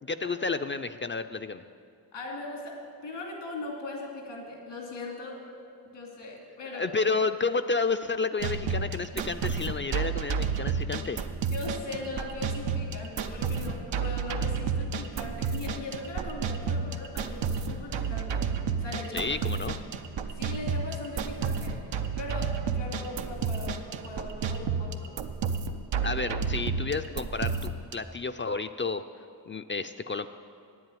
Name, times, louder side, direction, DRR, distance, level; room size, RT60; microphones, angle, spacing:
voice 1, 0.0-1.6 6.7-11.2 19.1-19.8 26.0-29.0 29.5-30.3, left 4 dB, 30° left, 9 dB, 0.4 m, -31 dB
voice 2, 2.1-5.4 5.9-6.9 11.5-18.5 18.8-19.3 20.4-21.7 22.1-25.1, left 2 dB, 90° left, -1 dB, 2.7 m, -39 dB
sound 1, 8.4-27.9, right 5 dB, 85° right, 0.7 m, -31 dB
8.9 x 7.9 x 9.2 m, 2.4 s
cardioid pair, 60°, 43 cm